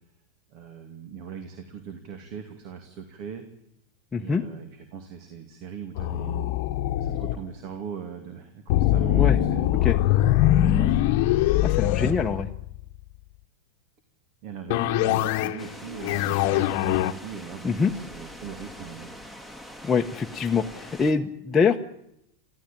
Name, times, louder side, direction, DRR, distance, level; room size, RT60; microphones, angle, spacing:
voice 1, 0.5-3.4 4.1-6.5 7.0-9.7 10.2-10.9 11.8-12.4 14.4-19.1, right 7 dB, 55° right, 7 dB, 2.5 m, -40 dB
voice 2, 4.1-4.4 9.1-9.4 9.8-10.0 11.6-12.5 17.6-17.9 19.8-21.8, left 5 dB, 20° left, 1 dB, 1.0 m, -24 dB
sound 1, 6.0-7.4 8.7-12.9 14.7-15.6 16.0-17.1, left 14 dB, 60° left, 1.0 m, -22 dB
sound 2, 15.6-21.1, equal, 10° right, 2.2 m, -43 dB
24.0 x 15.0 x 9.0 m, 0.80 s
hypercardioid pair, 105°, 0 cm